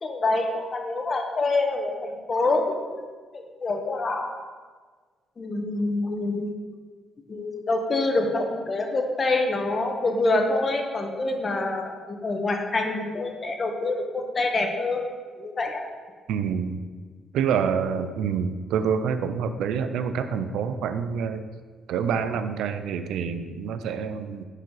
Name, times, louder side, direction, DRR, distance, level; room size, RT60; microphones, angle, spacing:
voice 1, 0.0-2.0 2.3-3.0 3.3-4.4 5.4-6.5 7.3-15.1 15.3-15.8, left 2 dB, 35° left, 3 dB, 1.3 m, -26 dB
voice 2, 16.3-16.8 17.3-21.4 21.9-24.5, right 7 dB, 85° right, 10 dB, 0.5 m, -27 dB
9.6 x 4.8 x 4.8 m, 1.5 s
cardioid pair, 90°, 0 cm